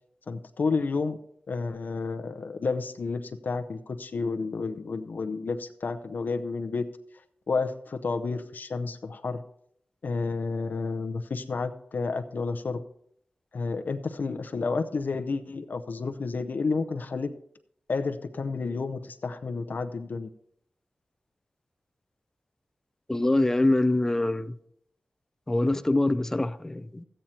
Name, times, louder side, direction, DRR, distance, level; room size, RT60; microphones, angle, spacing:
voice 1, 0.3-1.2 1.5-6.8 7.5-9.4 10.0-12.8 13.5-17.3 17.9-20.3, left 4 dB, 65° left, 0.7 m, -30 dB
voice 2, 23.1-24.5 25.5-27.0, left 2 dB, 15° left, 0.5 m, -24 dB
13.5 x 8.9 x 4.3 m
wide cardioid pair, 110°, 3 cm